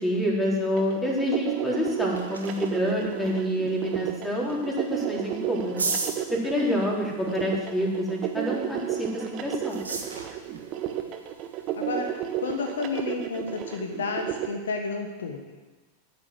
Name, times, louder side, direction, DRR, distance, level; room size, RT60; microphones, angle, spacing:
voice 1, 0.0-5.7 6.3-9.8, equal, 10° left, -3 dB, 3.9 m, -27 dB
sound 1, 0.8-14.5, right 11 dB, 35° right, 1.3 m, -32 dB
sound 2, 1.7-14.3, right 4 dB, 75° right, 2.0 m, -40 dB
voice 2, 11.8-15.6, left 4 dB, 65° left, 4 dB, 1.3 m, -31 dB
13.5 x 7.2 x 7.6 m, 1.3 s
figure-of-eight pair, 90°, 0 cm